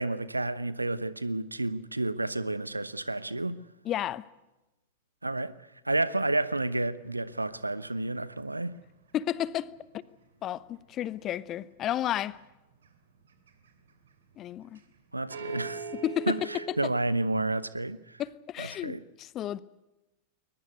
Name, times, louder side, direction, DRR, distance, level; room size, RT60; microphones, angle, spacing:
voice 1, 0.0-3.6 5.2-5.5 5.8-8.8 15.1-15.8 16.3-18.2 18.6-19.0, right 2 dB, 85° right, 0.9 m, -30 dB
voice 2, 3.8-4.2 9.1-9.7 10.4-12.4 14.4-14.8 16.0-16.5 18.2-19.6, left 11 dB, 30° left, 0.9 m, -32 dB
sound 1, 6.1-10.2 10.5-11.4 11.9-12.4 12.7-15.0 15.3-16.9, right 4 dB, 65° right, 2.9 m, -43 dB
22.0 x 20.5 x 8.1 m
figure-of-eight pair, 90°, 0 cm